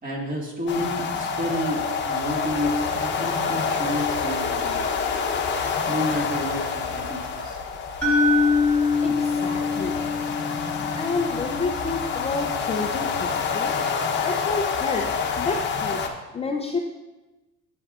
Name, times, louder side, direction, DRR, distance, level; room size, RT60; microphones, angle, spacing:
voice 1, 0.0-5.1 5.9-7.6, equal, 25° right, -1 dB, 1.9 m, -30 dB
sound 1, 0.7-16.1, left 5 dB, 35° left, 0.9 m, -27 dB
sound 2, 8.0-12.1, left 3 dB, 5° left, 2.4 m, -24 dB
voice 2, 9.0-10.0 10.9-13.7 14.2-15.0 15.4-16.0 16.3-16.8, left 4 dB, 20° left, 2 dB, 0.5 m, -29 dB
10.5 x 7.8 x 2.4 m, 1.1 s
cardioid pair, 135°, 31 cm